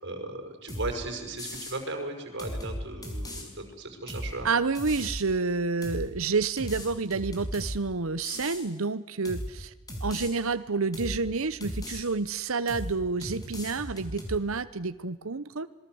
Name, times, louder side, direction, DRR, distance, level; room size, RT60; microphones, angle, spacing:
voice 1, 0.0-4.5, right 2 dB, 55° right, 5 dB, 5.7 m, -36 dB
sound 1, 0.7-0.9 1.4-1.8 2.4-3.4 4.1-4.3 4.7-5.2 5.8-6.1 6.6-7.8 8.2-8.6 9.2-9.5 9.9-10.3 10.9-11.2 11.6-12.0 12.7-12.9 13.2-14.4, equal, 15° left, 5.6 m, -36 dB
voice 2, 4.4-9.7 10.0-15.7, right 4 dB, 70° right, 13 dB, 0.9 m, -29 dB
26.5 x 22.0 x 7.9 m, 1.1 s
head